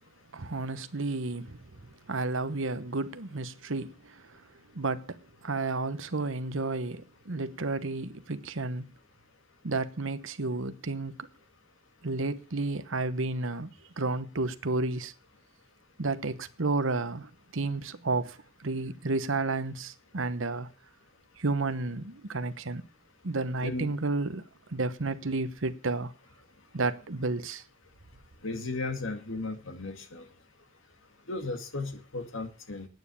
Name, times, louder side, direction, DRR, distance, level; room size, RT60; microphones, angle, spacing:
voice 1, 0.3-4.4 4.7-8.9 9.6-11.2 12.0-13.7 14.0-15.1 16.0-20.7 21.4-22.8 23.2-24.4 24.7-26.1 26.7-27.6, right 3 dB, 65° right, 1.1 m, -32 dB
voice 2, 28.4-30.3 31.3-32.9, left 2 dB, 65° left, 2.1 m, -35 dB
9.4 x 9.3 x 8.5 m
head